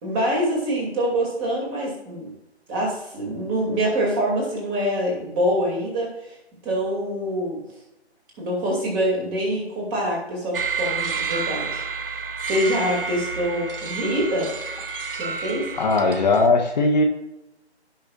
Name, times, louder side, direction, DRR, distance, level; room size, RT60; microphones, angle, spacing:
voice 1, 0.0-2.3 2.7-6.4 6.6-7.6 8.4-14.5 15.1-15.7, equal, 15° right, -2 dB, 2.4 m, -25 dB
sound 1, 10.5-16.5, right 5 dB, 55° right, 0.9 m, -30 dB
voice 2, 15.7-17.0, left 3 dB, 40° left, 1 dB, 1.2 m, -19 dB
16.0 x 5.6 x 2.4 m, 0.92 s
figure-of-eight pair, 145°, 34 cm